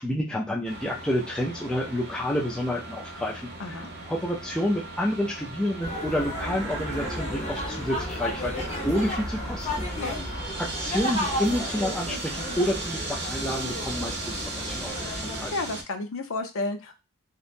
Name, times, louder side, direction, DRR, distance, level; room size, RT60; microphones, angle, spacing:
voice 1, 0.0-3.4 4.1-9.8 10.6-15.5, left 1 dB, 5° left, -3 dB, 0.4 m, -29 dB
sound 1, 0.6-15.8, right 2 dB, 50° right, 0.6 m, -38 dB
voice 2, 3.6-3.9 10.0-10.3 15.5-17.0, left 2 dB, 60° left, 6 dB, 0.5 m, -31 dB
sound 2, 5.8-15.5, left 1 dB, 30° left, 0.8 m, -33 dB
sound 3, 6.2-8.5, right 3 dB, 90° right, 0.7 m, -40 dB
2.8 x 2.1 x 2.5 m, 0.27 s
head